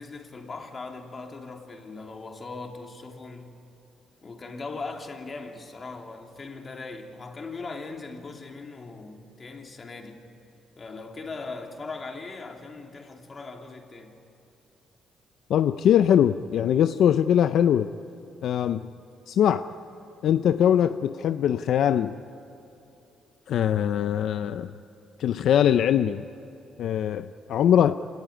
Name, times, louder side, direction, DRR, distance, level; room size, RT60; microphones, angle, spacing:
voice 1, 0.0-3.5 4.2-10.2 10.8-14.2, left 3 dB, 35° left, 2.9 m, -39 dB
voice 2, 15.5-17.9 18.4-18.8 19.3-19.7 20.2-22.1 23.5-24.7 25.2-26.2 26.8-28.0, left 9 dB, 75° left, 0.5 m, -22 dB
26.5 x 19.0 x 9.9 m
cardioid pair, 90°, 0 cm